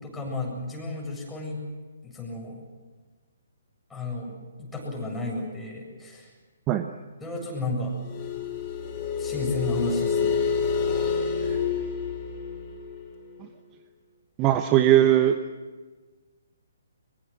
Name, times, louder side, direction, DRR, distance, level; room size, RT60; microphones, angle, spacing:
voice 1, 0.0-1.6 2.0-2.6 3.9-4.3 4.6-6.3 7.2-8.0 9.2-10.4, left 2 dB, 10° left, -1 dB, 7.6 m, -32 dB
sound 1, 8.0-13.5, left 6 dB, 30° left, 6.5 m, -28 dB
voice 2, 14.4-15.4, right 12 dB, 25° right, 9 dB, 1.0 m, -19 dB
23.5 x 23.0 x 7.8 m, 1.4 s
figure-of-eight pair, 135°, 0 cm